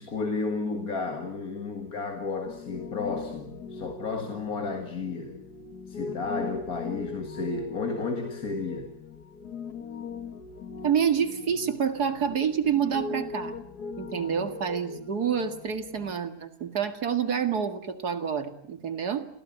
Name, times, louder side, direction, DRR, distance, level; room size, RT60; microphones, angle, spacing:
voice 1, 0.0-5.4 5.9-8.9, left 4 dB, 70° left, 2.4 m, -32 dB
Piano, 2.4-16.1, left 5 dB, 85° left, 2.1 m, -40 dB
voice 2, 10.8-13.6 14.0-19.3, right 7 dB, 90° right, 2.6 m, -28 dB
28.0 x 16.0 x 9.2 m
omnidirectional pair, 1.6 m